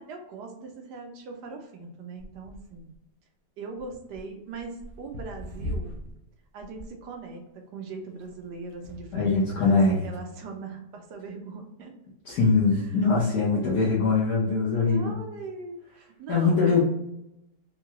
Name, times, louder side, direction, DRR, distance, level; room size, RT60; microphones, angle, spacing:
voice 1, 0.0-2.9 3.6-5.9 6.5-11.9 12.7-13.1 13.5-14.1 14.8-16.8, right 4 dB, 75° right, 3 dB, 1.2 m, -40 dB
sound 1, 2.2-3.0 3.8-6.2 6.6-7.0 8.1-9.4 10.2-10.3, left 1 dB, 60° right, 0.7 m, -39 dB
voice 2, 9.1-10.0 12.3-15.1 16.3-16.8, left 4 dB, 65° left, -8 dB, 1.3 m, -22 dB
3.7 x 2.2 x 2.9 m, 0.85 s
omnidirectional pair, 1.8 m